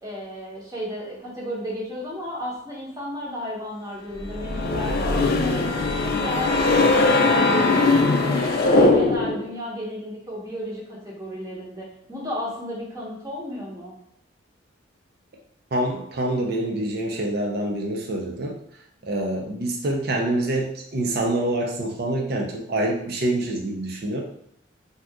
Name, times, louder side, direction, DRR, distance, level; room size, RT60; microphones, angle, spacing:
voice 1, 0.0-5.7 6.0-13.9, equal, 20° right, -4 dB, 0.9 m, -33 dB
sound 1, 4.2-9.5, left 3 dB, 50° left, 0.4 m, -20 dB
voice 2, 15.7-18.6 19.0-24.2, right 1 dB, 55° right, 0 dB, 0.6 m, -26 dB
2.7 x 2.4 x 3.5 m, 0.72 s
head